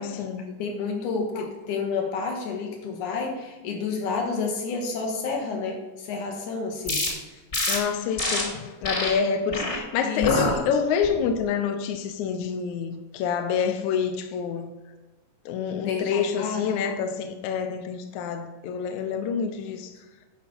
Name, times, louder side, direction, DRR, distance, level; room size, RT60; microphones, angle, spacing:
voice 1, 0.0-0.4 1.4-1.5 7.7-14.7 15.4-19.9, left 6 dB, 80° left, 1.7 m, -27 dB
voice 2, 0.6-7.0 7.3-7.4 10.0-10.4 15.8-16.1 16.4-16.6, left 4 dB, 65° left, 2.7 m, -29 dB
sound 1, 6.9-7.1 7.5-7.8 8.2-8.4 8.8-9.1 9.5-9.8 10.2-10.5 11.0-11.4, left 1 dB, 25° left, 1.6 m, -26 dB
10.5 x 4.8 x 5.3 m
omnidirectional pair, 4.0 m